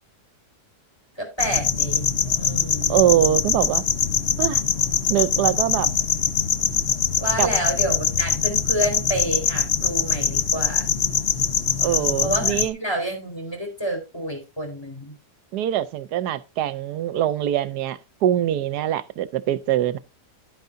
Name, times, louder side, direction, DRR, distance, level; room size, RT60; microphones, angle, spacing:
voice 1, 1.2-3.0 7.2-10.9 12.2-15.2, right 1 dB, 15° left, 4.1 m, -29 dB
sound 1, 1.4-12.7, left 6 dB, 50° left, 0.9 m, -23 dB
voice 2, 2.9-3.8 4.4-4.6 5.1-5.9 7.4-7.5 11.8-12.8 15.5-20.0, right 11 dB, 75° right, 1.2 m, -23 dB
11.5 x 9.3 x 2.6 m
omnidirectional pair, 1.8 m